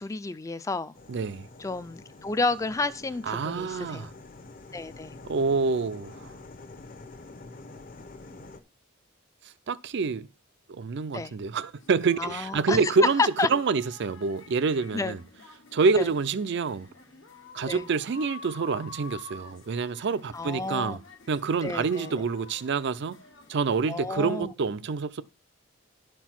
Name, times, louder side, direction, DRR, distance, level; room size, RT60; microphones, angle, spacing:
voice 1, 0.0-1.0 1.6-4.1 4.7-5.2 11.1-11.3 12.2-12.9 13.2-13.5 14.9-15.2 16.0-16.1 17.6-17.9 20.3-21.0 21.6-22.2 23.9-24.5, left 3 dB, 15° left, 0.4 m, -30 dB
sound 1, 0.9-8.6, left 3 dB, 45° left, 0.8 m, -47 dB
voice 2, 1.1-1.5 3.3-4.1 5.3-6.3 9.7-10.3 10.7-13.2 13.5-15.2 15.7-16.9 17.5-21.0 21.3-23.2 23.5-25.2, right 4 dB, 60° right, 0.5 m, -27 dB
sound 2, 11.7-24.0, left 3 dB, 85° left, 1.4 m, -49 dB
11.0 x 4.5 x 5.8 m
head